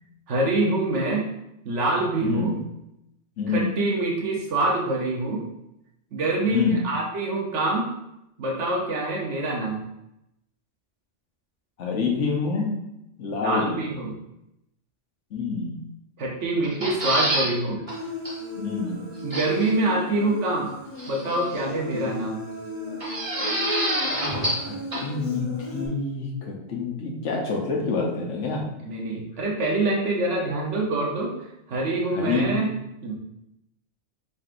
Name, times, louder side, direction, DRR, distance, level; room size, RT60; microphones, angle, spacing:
voice 1, 0.3-1.2 1.6-2.5 3.5-5.4 6.1-7.9 8.4-9.8 13.3-14.2 16.2-17.8 19.2-20.7 21.1-22.4 28.8-31.3 31.7-32.7 33.0-33.1, right 2 dB, 80° right, -2 dB, 1.2 m, -25 dB
voice 2, 2.2-2.6 3.4-3.7 6.5-6.8 11.8-12.8 13.2-14.0 15.3-15.9 18.6-19.1 21.9-22.1 24.6-28.7 32.1-32.7, left 4 dB, 85° left, 0 dB, 1.2 m, -27 dB
sound 1, 16.6-17.5 17.9-18.0 18.3-18.4 19.3-19.7 21.0-21.6 23.0-24.7 24.9-25.0, right 1 dB, 30° right, 1.3 m, -27 dB
Human voice, 17.9-25.9, left 2 dB, 45° left, 1.1 m, -36 dB
4.5 x 4.0 x 2.5 m, 0.85 s
omnidirectional pair, 1.2 m